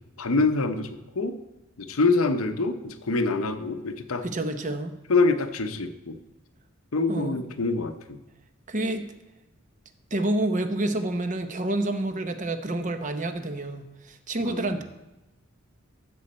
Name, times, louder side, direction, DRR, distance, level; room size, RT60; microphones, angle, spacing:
voice 1, 0.2-1.4 1.8-4.3 5.1-6.2 6.9-8.2 14.4-14.6, left 3 dB, 90° left, 8 dB, 0.8 m, -25 dB
voice 2, 4.2-4.9 7.1-7.4 8.7-9.1 10.1-14.8, right 1 dB, 35° right, 8 dB, 0.8 m, -28 dB
15.0 x 7.2 x 4.3 m, 0.99 s
head